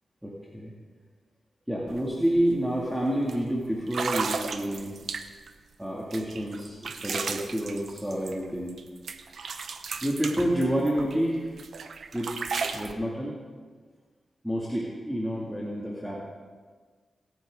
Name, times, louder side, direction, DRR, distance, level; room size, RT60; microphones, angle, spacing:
voice 1, 0.2-0.7 1.7-5.0 5.8-8.8 10.0-11.5 12.1-12.3 12.7-13.3 14.4-16.2, equal, 5° right, -5 dB, 2.3 m, -29 dB
sound 1, 1.9-2.0 2.4-2.7 3.3-3.4 3.9-5.5 6.1-8.8 9.1-11.2 11.6-12.9, right 5 dB, 75° right, 0.8 m, -34 dB
22.5 x 9.1 x 3.8 m, 1.5 s
cardioid pair, 75°, 0 cm